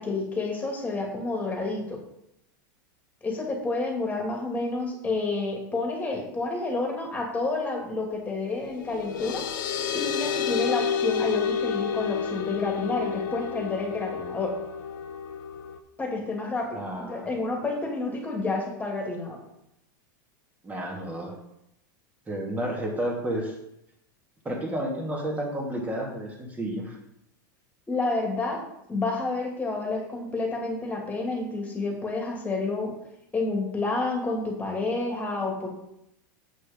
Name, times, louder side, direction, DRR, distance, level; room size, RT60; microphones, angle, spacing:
voice 1, 0.0-2.0 3.2-9.4 9.9-14.5 16.0-19.4 27.9-28.6 28.9-32.9 33.3-35.7, left 3 dB, 15° left, 1 dB, 2.6 m, -29 dB
sound 1, 8.6-15.8, left 7 dB, 80° left, 1.1 m, -30 dB
voice 2, 16.7-17.3 20.6-21.3 22.3-23.5 24.4-27.0, right 1 dB, 15° right, -1 dB, 2.5 m, -31 dB
8.0 x 6.4 x 5.3 m, 0.81 s
supercardioid pair, 130°, 11 cm